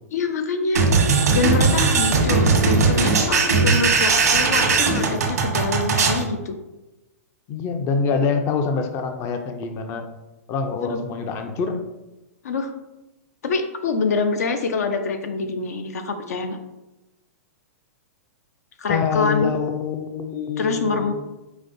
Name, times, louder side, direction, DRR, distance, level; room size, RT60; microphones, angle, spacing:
voice 1, 0.1-0.9 1.3-6.6 10.8-11.0 12.4-12.7 13.4-16.6 18.8-19.5 20.6-21.1, left 4 dB, 80° left, 7 dB, 0.6 m, -25 dB
sound 1, 0.7-6.2, right 4 dB, 90° right, 1.0 m, -19 dB
voice 2, 7.5-10.0 10.5-11.8 18.9-21.1, left 5 dB, 30° left, 6 dB, 0.4 m, -25 dB
5.1 x 3.7 x 2.6 m, 1.0 s
hypercardioid pair, 130°, 8 cm